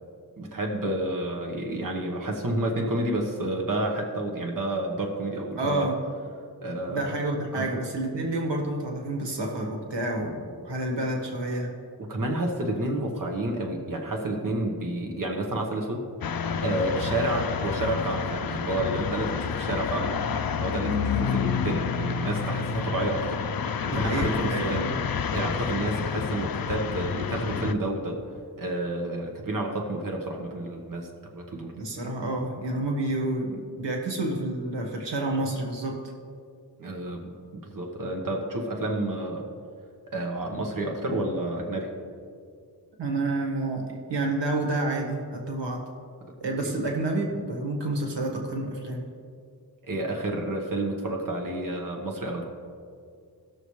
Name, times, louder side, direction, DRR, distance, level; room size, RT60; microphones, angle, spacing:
voice 1, 0.4-5.9 6.6-7.1 7.5-7.7 12.1-16.1 16.6-20.2 20.6-23.4 23.8-24.8 25.3-28.2 28.6-31.7 36.8-39.5 40.1-41.9 49.8-52.4, right 1 dB, 50° right, 1 dB, 1.3 m, -30 dB
voice 2, 5.6-6.0 6.9-11.7 23.9-24.9 31.8-36.0 43.0-43.8 44.1-45.8 46.4-49.1, right 2 dB, 90° right, 1 dB, 1.6 m, -29 dB
sound 1, 16.2-27.7, left 6 dB, 55° left, 0.6 m, -29 dB
18.0 x 6.8 x 3.2 m, 2.3 s
wide cardioid pair, 85°, 41 cm